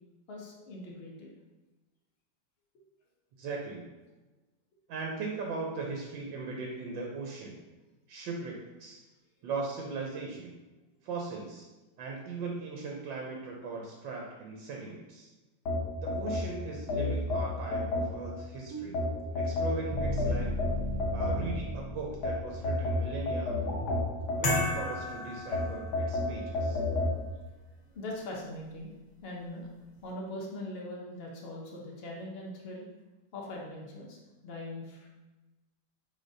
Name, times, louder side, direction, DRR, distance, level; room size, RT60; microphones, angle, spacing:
voice 1, 0.3-1.3 27.9-28.9 29.2-29.7 30.0-32.9 33.3-35.1, left 1 dB, 70° left, -2 dB, 0.5 m, -41 dB
voice 2, 3.4-3.9 4.9-7.6 8.1-9.0 9.4-10.5 11.0-11.7 12.0-15.3 16.0-19.0 19.3-20.5 21.1-23.8 24.4-26.8, right 3 dB, 80° right, -1 dB, 1.4 m, -38 dB
sound 1, 15.7-18.4 18.9-21.7 22.2-25.0 25.5-27.2, left 2 dB, 90° left, 1.6 m, -31 dB
sound 2, 18.7-22.8, equal, 60° right, 1.1 m, -36 dB
sound 3, 24.4-26.3, left 1 dB, 45° left, 1.0 m, -33 dB
5.0 x 3.8 x 2.6 m, 1.1 s
omnidirectional pair, 2.1 m